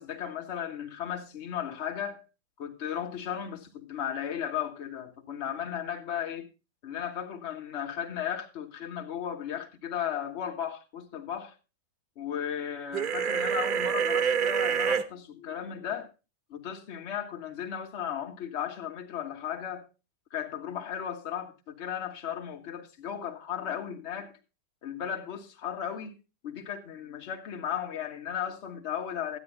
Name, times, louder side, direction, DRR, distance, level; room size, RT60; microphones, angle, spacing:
voice 1, 0.0-2.2 2.6-6.5 6.8-11.5 12.1-16.1 16.5-19.8 20.3-24.4 24.8-26.1 26.4-29.4, left 9 dB, 45° left, 1.7 m, -35 dB
sound 1, 12.9-15.0, right 7 dB, 35° right, 0.8 m, -27 dB
12.5 x 9.9 x 3.8 m
figure-of-eight pair, 90°, 0 cm